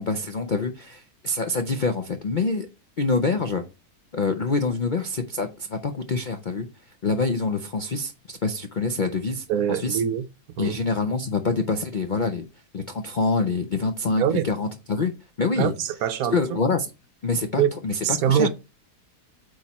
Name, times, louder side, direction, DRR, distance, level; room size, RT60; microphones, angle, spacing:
voice 1, 0.0-2.7 3.0-3.6 4.1-6.7 7.0-10.0 10.6-12.4 12.7-15.1 15.4-15.7 16.3-16.9 17.2-18.5, left 3 dB, 60° left, 0.5 m, -26 dB
voice 2, 9.5-10.2 10.6-10.8 14.2-14.4 15.6-16.4 17.6-17.7 18.0-18.5, right 9 dB, 70° right, 1.0 m, -23 dB
8.5 x 3.2 x 4.1 m
omnidirectional pair, 1.7 m